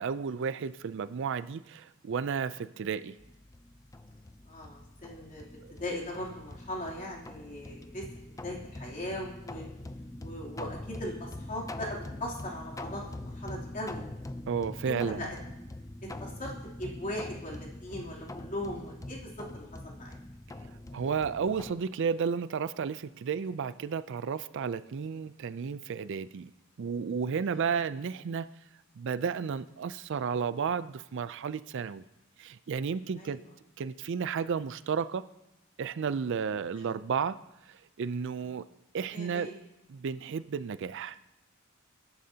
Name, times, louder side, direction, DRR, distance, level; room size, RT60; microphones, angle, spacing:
voice 1, 0.0-3.2 5.6-5.7 14.5-15.2 20.9-26.5 26.8-28.5 29.0-32.0 32.4-33.4 33.8-35.3 35.8-37.4 37.7-38.6 38.9-39.5 39.9-41.2, right 6 dB, 60° right, 15 dB, 0.4 m, -32 dB
sound 1, 3.2-21.7, left 1 dB, 15° left, 0.5 m, -43 dB
voice 2, 4.4-9.6 10.2-14.0 14.8-15.4 16.2-20.2 33.2-33.5 36.8-36.9 38.4-38.5 39.1-39.5, left 1 dB, 40° left, -3 dB, 3.1 m, -39 dB
23.0 x 11.0 x 2.8 m, 0.93 s
head